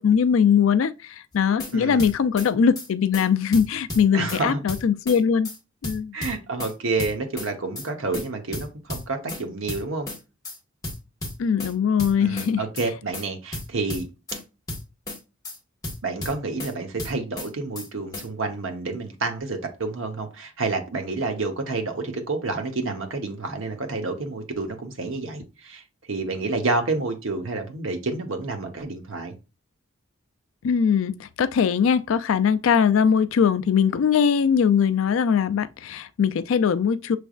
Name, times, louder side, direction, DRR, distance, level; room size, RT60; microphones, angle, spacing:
voice 1, 0.0-5.5 5.8-6.1 11.4-12.6 30.6-37.2, left 7 dB, 70° left, 0.4 m, -21 dB
sound 1, 1.3-1.7 2.0-2.5 2.8-2.9 3.1-3.3 3.5-4.4 4.7-5.2 5.4-5.6 5.8-6.7 7.0-7.5 7.8-7.9 8.1-8.3 8.5-9.4 9.7-10.2 10.4-10.6 10.8-11.7 12.0-12.5 12.8-12.9 13.1-13.3 13.5-14.4 14.7-15.2 15.4-15.6 15.8-16.7 17.0-17.5 17.8-17.9 18.1-18.3, left 1 dB, 15° left, 1.3 m, -33 dB
voice 2, 1.7-2.1 4.1-4.6 6.1-10.1 12.2-14.1 16.0-25.8 26.1-29.3, right 3 dB, 70° right, 0.9 m, -29 dB
6.1 x 3.3 x 2.4 m
head